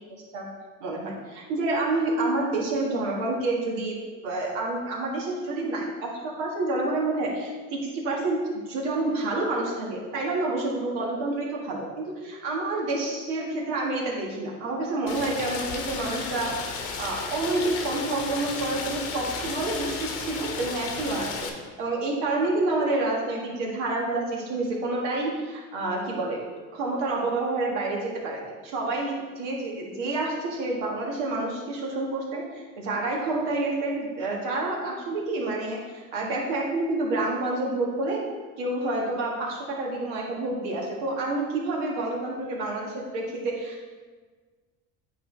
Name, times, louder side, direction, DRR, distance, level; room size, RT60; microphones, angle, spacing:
voice 1, 0.8-3.9 4.2-16.6 17.0-21.3 21.8-26.4 26.7-38.2 38.6-43.9, right 2 dB, 85° right, -2 dB, 1.6 m, -28 dB
Rain, 15.1-21.5, left 5 dB, 80° left, 1.1 m, -34 dB
9.0 x 4.2 x 3.2 m, 1.4 s
supercardioid pair, 85°, 35 cm